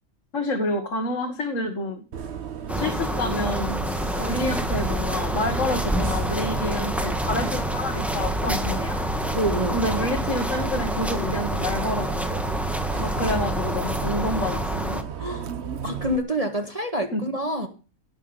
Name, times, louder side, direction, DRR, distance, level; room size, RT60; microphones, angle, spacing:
voice 1, 0.3-2.0 2.7-3.8 4.2-9.0 9.7-12.4 13.0-14.7 17.1-17.2, left 1 dB, 60° left, 5 dB, 2.2 m, -28 dB
Bus, 2.1-16.2, right 7 dB, 50° right, 1.2 m, -33 dB
sound 1, 2.7-15.0, equal, ahead, 1.4 m, -28 dB
voice 2, 9.3-9.8 15.2-15.5 15.8-17.7, right 1 dB, 25° right, 4 dB, 1.8 m, -27 dB
17.5 x 6.2 x 8.9 m, 0.35 s
omnidirectional pair, 1.5 m